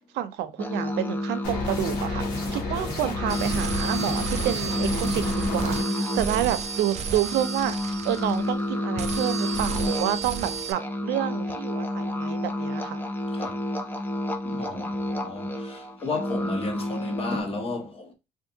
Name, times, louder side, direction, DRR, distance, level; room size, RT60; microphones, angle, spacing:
voice 1, 0.1-5.3 5.5-13.0, right 12 dB, 85° right, 0.6 m, -29 dB
sound 1, 0.6-17.4, left 1 dB, 10° left, 0.5 m, -30 dB
sound 2, 1.4-5.8, left 3 dB, 90° left, 1.6 m, -32 dB
sound 3, 3.3-8.7 9.0-10.7, right 7 dB, 40° right, 0.5 m, -33 dB
voice 2, 14.4-18.1, left 2 dB, 35° left, 1.2 m, -33 dB
3.5 x 2.5 x 2.7 m
cardioid pair, 110°, 17 cm